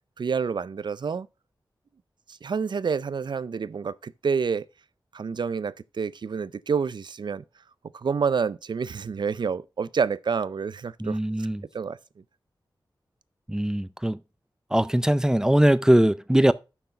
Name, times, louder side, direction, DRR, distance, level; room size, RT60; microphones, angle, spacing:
voice 1, 0.2-1.3 2.4-4.6 5.1-7.4 7.9-11.2 11.7-12.0, right 5 dB, 65° right, 0.4 m, -28 dB
voice 2, 11.0-11.6 13.5-14.2 14.7-16.5, right 1 dB, 5° right, 0.4 m, -21 dB
6.7 x 5.9 x 5.1 m
wide cardioid pair, 90°, 8 cm